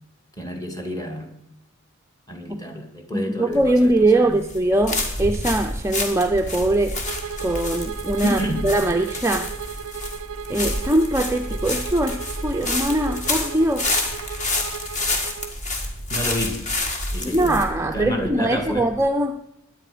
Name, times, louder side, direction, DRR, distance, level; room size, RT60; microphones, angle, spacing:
voice 1, 0.4-1.3 2.3-4.4 8.2-8.7 16.1-16.6 17.1-18.9, equal, 15° left, 5 dB, 1.9 m, -29 dB
voice 2, 3.1-7.0 7.4-9.5 10.5-14.1 17.2-19.4, right 1 dB, 10° right, 4 dB, 0.5 m, -22 dB
sound 1, 3.5-19.0, left 2 dB, 35° left, 1.9 m, -29 dB
Bowed string instrument, 7.0-15.6, right 8 dB, 70° right, 0.4 m, -36 dB
17.5 x 10.5 x 5.0 m, 0.80 s
head